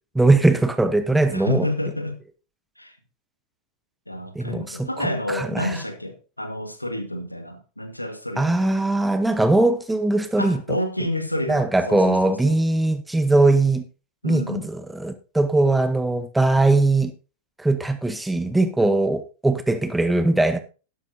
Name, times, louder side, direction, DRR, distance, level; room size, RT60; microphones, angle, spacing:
voice 1, 0.1-1.7 4.3-4.9 5.3-5.7 8.4-10.8 11.5-13.8 14.2-17.1 17.6-20.6, right 2 dB, 5° right, 0.9 m, -20 dB
voice 2, 1.3-2.2 2.8-3.0 4.1-8.8 10.4-12.6 14.2-14.7, left 1 dB, 85° left, 1.5 m, -29 dB
12.0 x 11.5 x 2.7 m
figure-of-eight pair, 90°, 0 cm